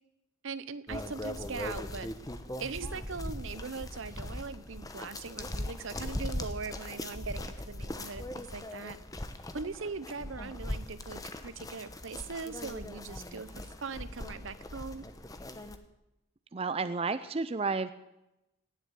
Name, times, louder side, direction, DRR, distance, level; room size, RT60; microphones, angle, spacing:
voice 1, 0.4-2.1 2.6-9.0 9.5-15.1, right 4 dB, 70° right, 15 dB, 0.8 m, -40 dB
sound 1, 0.9-15.8, left 1 dB, 15° left, 0.9 m, -40 dB
voice 2, 16.5-17.9, right 4 dB, 30° right, 12 dB, 0.4 m, -31 dB
18.0 x 7.3 x 9.7 m, 0.90 s
head